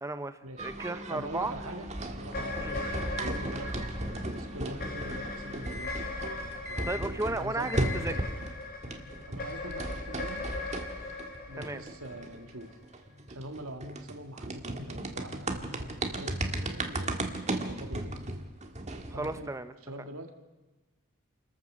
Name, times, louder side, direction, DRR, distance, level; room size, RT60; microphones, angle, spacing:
voice 1, 0.0-1.5 2.6-2.7 6.9-8.1 11.6-11.8 18.0-18.1 19.1-19.7, right 2 dB, 15° right, 12 dB, 0.7 m, -34 dB
sound 1, 0.6-8.6 8.8-19.4, right 1 dB, 35° right, 1.7 m, -36 dB
voice 2, 1.1-3.8 4.3-6.1 6.6-7.8 9.3-10.5 11.5-12.8 13.3-17.2 17.6-18.2 19.1-19.5 19.8-20.3, right 1 dB, 80° right, 6 dB, 2.0 m, -44 dB
sound 2, 2.2-12.7, left 2 dB, 45° left, 3.0 m, -39 dB
28.5 x 14.5 x 6.3 m, 1.2 s
head